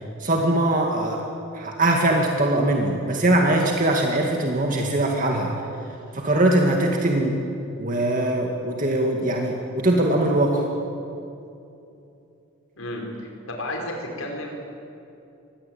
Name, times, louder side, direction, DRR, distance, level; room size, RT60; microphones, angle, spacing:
voice 1, 0.2-1.3 1.5-5.5 6.1-7.4 7.8-10.6, right 1 dB, 40° right, 1 dB, 2.2 m, -21 dB
voice 2, 12.8-14.5, left 1 dB, 75° left, 1 dB, 4.8 m, -32 dB
25.5 x 20.5 x 8.9 m, 2.8 s
head